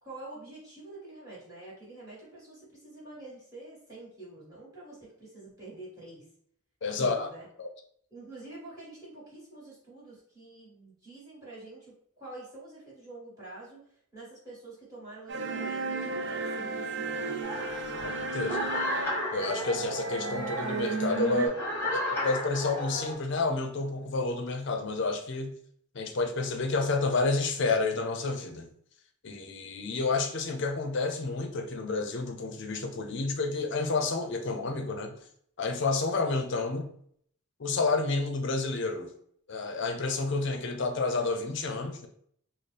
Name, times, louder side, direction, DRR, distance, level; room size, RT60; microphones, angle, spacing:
voice 1, 0.0-6.2 7.0-7.4 8.1-13.8 14.1-17.6, right 2 dB, 15° right, -8 dB, 1.5 m, -47 dB
voice 2, 6.8-7.3 7.6-7.7 18.0-18.6 19.3-21.6 21.9-25.5 25.9-28.7 29.2-35.1 35.6-36.9 37.6-39.1 39.5-42.1, left 3 dB, 55° left, 5 dB, 0.5 m, -30 dB
sound 1, 15.3-21.5, right 3 dB, 55° right, 0.4 m, -34 dB
sound 2, 17.4-23.1, left 1 dB, 15° left, 1.2 m, -34 dB
4.1 x 2.0 x 3.2 m, 0.65 s
head